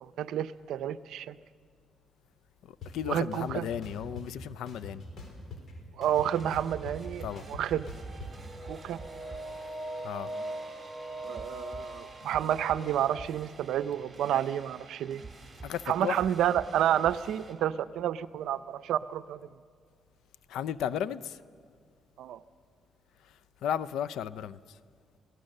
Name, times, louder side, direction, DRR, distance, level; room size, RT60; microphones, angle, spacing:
voice 1, 0.0-1.4 3.1-3.6 6.0-7.9 8.7-9.0 11.2-15.2 15.9-19.4 22.2-22.4, right 10 dB, 80° right, 0.6 m, -30 dB
voice 2, 2.6-5.0 7.2-7.5 10.0-10.3 15.6-16.3 20.5-21.4 23.2-24.8, left 9 dB, 80° left, 0.6 m, -35 dB
sound 1, 2.8-2.9 3.3-4.3 4.7-5.7 6.0-8.3, left 4 dB, 60° left, 4.6 m, -44 dB
sound 2, 6.1-17.5, right 4 dB, 15° right, 3.8 m, -48 dB
sound 3, 8.3-13.1, right 1 dB, 20° left, 4.0 m, -41 dB
27.0 x 17.5 x 6.6 m
cardioid pair, 90°, 0 cm